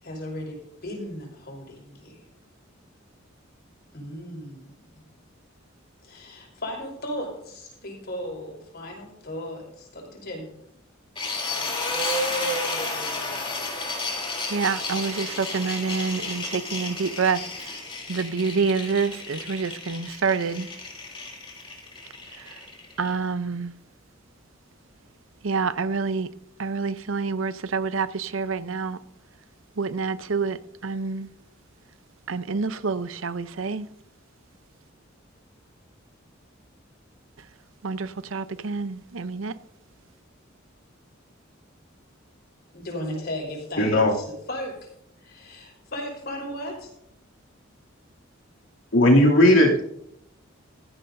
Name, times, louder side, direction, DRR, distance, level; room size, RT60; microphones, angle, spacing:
voice 1, 0.0-2.2 3.9-5.0 6.0-10.5 42.7-44.9 45.2-46.9, left 1 dB, 55° left, 5.3 m, -36 dB
sound 1, 11.2-23.1, left 2 dB, 25° left, 3.3 m, -32 dB
voice 2, 14.5-17.8 18.1-20.7 22.4-22.6 23.0-23.7 25.4-26.3 26.6-29.0 29.8-30.6 30.8-31.3 32.3-33.9 37.8-39.5, right 4 dB, 80° right, 0.7 m, -27 dB
voice 3, 43.8-44.1 48.9-49.8, left 1 dB, 80° left, 2.8 m, -16 dB
17.0 x 14.5 x 2.7 m
head